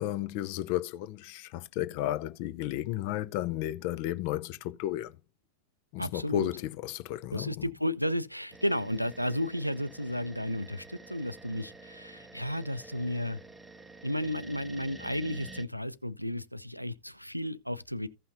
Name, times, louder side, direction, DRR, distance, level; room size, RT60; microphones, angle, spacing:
voice 1, 0.0-5.2 5.9-7.6, left 14 dB, 45° left, 0.6 m, -33 dB
voice 2, 6.0-6.5 7.3-13.4 14.0-18.1, left 1 dB, 90° right, 0.5 m, -33 dB
sound 1, 8.5-15.6, right 3 dB, 5° right, 0.7 m, -49 dB
15.5 x 5.6 x 2.7 m
figure-of-eight pair, 90°, 0 cm